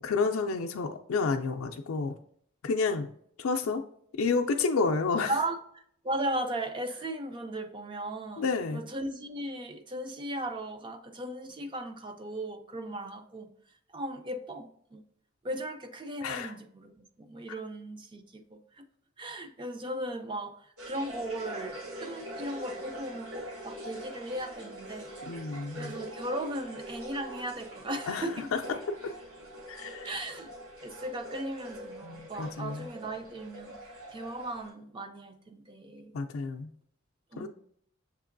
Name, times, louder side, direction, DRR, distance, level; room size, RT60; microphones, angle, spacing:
voice 1, 0.0-2.1 2.6-3.1 3.4-3.8 4.1-5.3 8.4-8.8 16.2-16.5 25.3-26.0 28.1-28.6 29.7-30.1 32.0-32.9 36.1-36.7 37.4-37.5, left 4 dB, 75° left, 3 dB, 0.4 m, -30 dB
voice 2, 6.0-8.5 8.7-13.5 13.9-15.0 15.4-18.8 19.2-25.1 25.8-28.5 30.0-30.5 30.8-33.7 34.1-36.1 37.3-37.5, right 1 dB, 25° right, 6 dB, 0.4 m, -37 dB
sound 1, 20.8-34.7, right 1 dB, 80° right, 1.1 m, -44 dB
6.6 x 2.9 x 2.5 m, 0.64 s
head